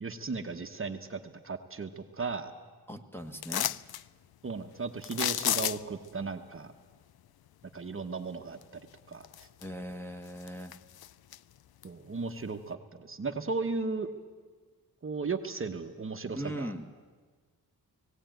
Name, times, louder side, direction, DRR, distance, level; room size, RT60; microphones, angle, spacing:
voice 1, 0.0-2.5 4.4-6.7 7.7-8.6 9.1-9.5 11.8-14.1 15.0-16.7, right 4 dB, 35° right, 6 dB, 0.9 m, -36 dB
voice 2, 2.9-3.7 9.6-10.7 16.3-16.9, equal, 5° left, 6 dB, 1.2 m, -39 dB
sound 1, 3.4-4.0 5.0-6.1 8.6-8.7 9.2-9.9 10.3-11.4 11.8-11.9, left 12 dB, 85° left, 0.5 m, -32 dB
18.0 x 17.0 x 9.1 m, 1.5 s
wide cardioid pair, 130°, 36 cm